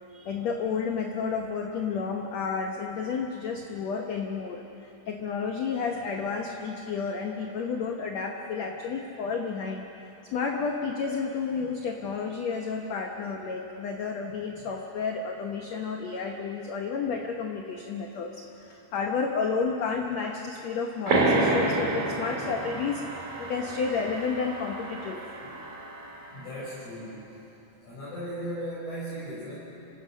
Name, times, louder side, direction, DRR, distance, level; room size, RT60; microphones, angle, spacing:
voice 1, 0.1-9.9 10.3-25.2, left 5 dB, 75° left, 3 dB, 1.5 m, -31 dB
sound 1, 21.1-26.3, right 2 dB, 55° right, 4.0 m, -29 dB
voice 2, 26.3-27.3 27.8-29.5, equal, 45° left, -11 dB, 7.9 m, -37 dB
27.5 x 17.0 x 6.3 m, 3.0 s
omnidirectional pair, 4.6 m